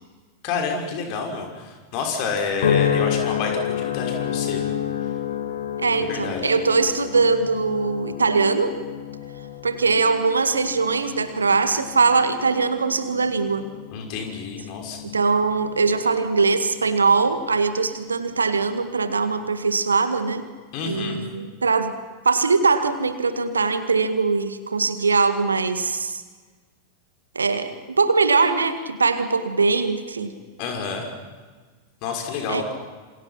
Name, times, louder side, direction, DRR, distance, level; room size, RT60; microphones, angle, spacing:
voice 1, 0.4-4.7 6.0-6.5 13.9-15.0 20.7-21.2 30.6-31.1 32.0-32.6, left 5 dB, 45° left, 3 dB, 5.9 m, -29 dB
sound 1, 2.6-17.1 17.6-18.0, left 9 dB, 60° left, 2.2 m, -30 dB
voice 2, 5.8-8.8 9.6-13.6 15.0-20.4 20.8-21.9 22.3-26.2 27.4-30.3 32.5-32.6, right 4 dB, 75° right, 10 dB, 1.9 m, -21 dB
27.5 x 27.0 x 5.9 m, 1.4 s
figure-of-eight pair, 90°, 0 cm